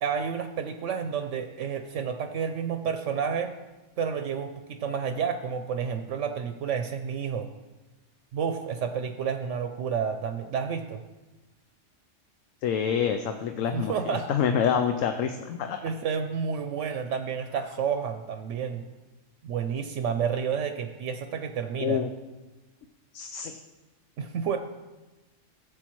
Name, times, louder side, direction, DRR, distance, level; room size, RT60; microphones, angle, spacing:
voice 1, 0.0-3.5 4.0-7.5 8.3-11.0 13.7-14.3 15.8-18.8 19.4-22.0 24.2-24.6, right 7 dB, 75° right, 7 dB, 0.9 m, -30 dB
voice 2, 12.6-13.9 14.3-15.8 21.8-22.1 23.1-23.5, left 8 dB, 85° left, 6 dB, 1.0 m, -26 dB
14.5 x 8.0 x 3.0 m, 1.1 s
omnidirectional pair, 1.3 m